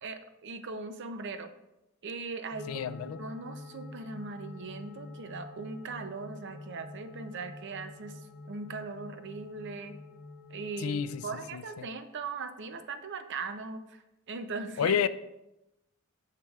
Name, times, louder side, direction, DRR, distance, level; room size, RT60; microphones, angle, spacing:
voice 1, 0.0-1.5 2.0-9.9 10.5-15.0, right 4 dB, 55° right, 9 dB, 0.5 m, -40 dB
sound 1, 2.5-11.5, left 2 dB, 20° left, 1.1 m, -47 dB
voice 2, 2.7-3.2 10.8-11.2 11.5-11.9 14.8-15.1, left 7 dB, 70° left, 15 dB, 0.3 m, -30 dB
8.4 x 6.6 x 2.4 m, 0.92 s
head